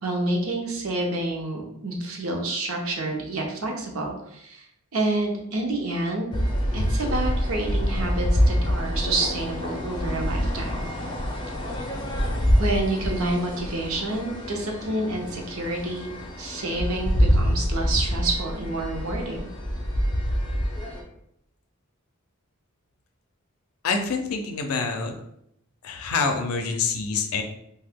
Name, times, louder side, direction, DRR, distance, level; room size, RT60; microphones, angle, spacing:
voice 1, 0.0-4.6 4.9-6.3 6.7-10.8 12.6-16.1 16.4-19.5, right 2 dB, 65° right, 1 dB, 0.7 m, -28 dB
sound 1, 6.3-21.0, equal, 20° left, 0.5 m, -26 dB
voice 2, 23.8-25.1 25.8-27.4, left 4 dB, 75° left, 5 dB, 0.5 m, -26 dB
2.8 x 2.2 x 3.5 m, 0.76 s
head